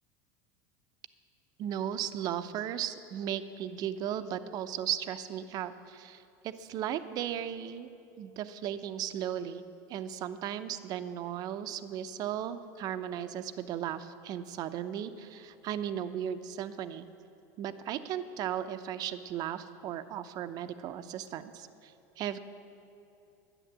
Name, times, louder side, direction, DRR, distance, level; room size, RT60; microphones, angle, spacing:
voice 1, 1.6-7.9 8.2-9.6 9.9-17.1 17.6-22.4, right 10 dB, 50° right, 11 dB, 0.7 m, -36 dB
11.0 x 10.0 x 7.4 m, 2.8 s
supercardioid pair, 110°, 9 cm